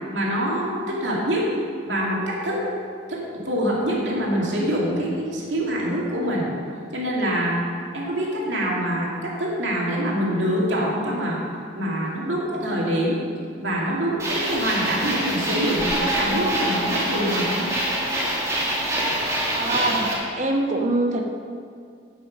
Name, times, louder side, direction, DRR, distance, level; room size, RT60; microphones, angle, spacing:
voice 1, 0.1-1.5 1.8-2.6 3.1-3.2 3.5-6.5 6.9-7.6 7.9-11.4 11.8-13.2 13.6-17.7, equal, 85° right, -3 dB, 2.4 m, -25 dB
sound 1, 14.2-20.1, right 1 dB, 15° right, 2.0 m, -25 dB
voice 2, 19.5-20.1 20.4-21.3, right 2 dB, 40° right, 2 dB, 1.1 m, -23 dB
9.2 x 8.9 x 5.4 m, 2.2 s
head